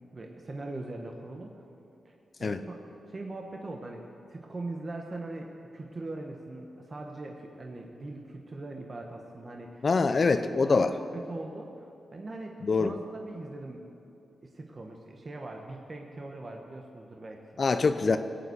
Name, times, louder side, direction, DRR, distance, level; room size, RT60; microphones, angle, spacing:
voice 1, 0.1-1.5 2.0-9.9 10.6-13.9 14.5-17.6, right 2 dB, 40° right, 1 dB, 1.3 m, -41 dB
voice 2, 9.8-10.9 12.6-12.9 17.6-18.2, left 4 dB, 50° left, 10 dB, 0.6 m, -24 dB
17.5 x 8.5 x 8.0 m, 2.7 s
cardioid pair, 65°, 0 cm